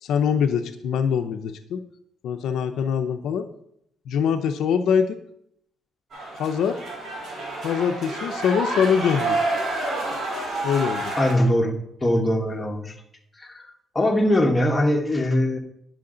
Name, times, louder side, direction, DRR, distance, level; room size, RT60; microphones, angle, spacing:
voice 1, 0.0-1.8 2.2-3.5 4.1-5.2 6.4-6.8 7.6-9.4 10.6-11.1, left 7 dB, 80° left, 7 dB, 0.6 m, -23 dB
sound 1, 6.1-11.3, right 2 dB, 55° right, 3.4 m, -28 dB
voice 2, 11.2-11.7 12.0-12.9 13.4-13.6 13.9-15.6, left 1 dB, 15° left, 1 dB, 1.2 m, -21 dB
9.7 x 6.4 x 3.8 m, 0.73 s
cardioid pair, 125°, 0 cm